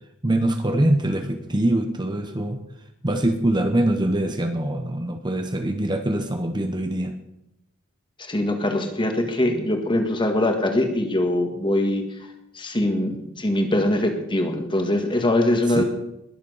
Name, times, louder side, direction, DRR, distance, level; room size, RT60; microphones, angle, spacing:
voice 1, 0.2-2.6 3.0-7.1 15.7-15.8, right 1 dB, 20° right, 6 dB, 0.9 m, -23 dB
voice 2, 8.2-12.0 12.6-15.8, left 1 dB, 25° left, 5 dB, 1.8 m, -22 dB
20.5 x 7.4 x 5.5 m, 0.85 s
head